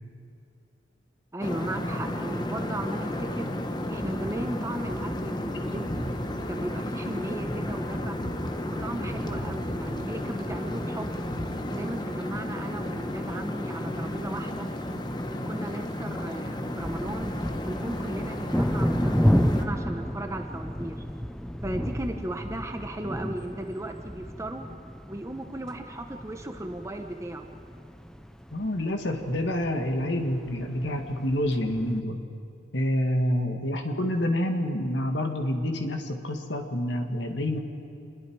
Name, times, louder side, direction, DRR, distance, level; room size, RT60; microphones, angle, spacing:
voice 1, 1.3-3.5 3.9-6.0 6.4-8.2 8.6-11.2 11.7-14.6 15.5-17.3 17.6-21.0 21.6-24.6 25.1-27.5, right 1 dB, 15° right, 5 dB, 0.9 m, -36 dB
sound 1, 1.4-19.7, left 1 dB, 20° left, 1.1 m, -32 dB
sound 2, 16.8-32.0, equal, 5° left, 0.6 m, -31 dB
voice 2, 28.5-32.2 32.7-37.6, left 1 dB, 70° left, 4 dB, 1.9 m, -27 dB
27.5 x 21.5 x 4.8 m, 2.5 s
head